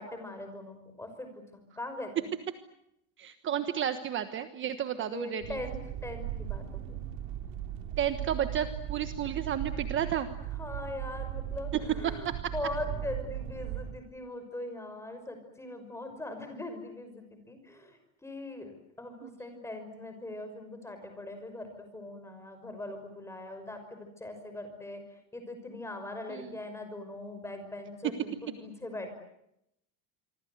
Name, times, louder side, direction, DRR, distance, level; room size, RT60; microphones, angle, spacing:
voice 1, 0.0-1.4 1.8-2.3 3.5-3.6 5.1-7.0 10.6-25.0 25.3-29.1, left 2 dB, 5° left, 7 dB, 5.8 m, -41 dB
voice 2, 3.2-5.6 8.0-10.3 11.7-12.5 19.2-19.6 26.3-26.5, right 9 dB, 35° right, 9 dB, 1.3 m, -32 dB
sound 1, 5.4-13.9, right 11 dB, 80° right, 3.2 m, -38 dB
26.5 x 24.5 x 8.0 m, 0.80 s
cardioid pair, 165°, 37 cm